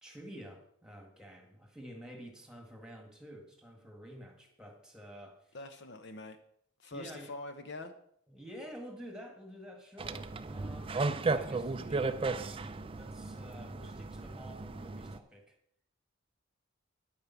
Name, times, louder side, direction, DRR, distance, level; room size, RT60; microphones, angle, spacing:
voice 1, 0.0-5.6 6.9-7.3 8.3-15.6, equal, 5° right, 3 dB, 1.9 m, -49 dB
voice 2, 5.5-6.4 6.8-7.9, left 2 dB, 55° left, 8 dB, 0.9 m, -44 dB
sound 1, 10.0-15.2, right 3 dB, 25° right, 0.4 m, -35 dB
9.9 x 8.6 x 5.9 m, 0.69 s
head